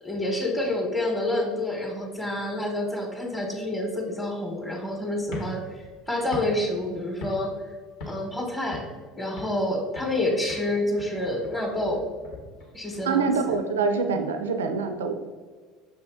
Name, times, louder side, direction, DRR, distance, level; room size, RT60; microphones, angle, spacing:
voice 1, 0.0-7.5 8.1-8.8 9.2-12.0 12.7-13.5, left 1 dB, 10° left, 1 dB, 0.9 m, -28 dB
sound 1, 5.2-7.7 8.0-8.4 8.7-9.7 10.0-10.2 10.5-13.6, left 2 dB, 65° left, 1.0 m, -40 dB
voice 2, 13.0-15.1, right 5 dB, 85° right, 6 dB, 0.4 m, -25 dB
5.8 x 2.7 x 3.5 m, 1.5 s
hypercardioid pair, 75°, 0 cm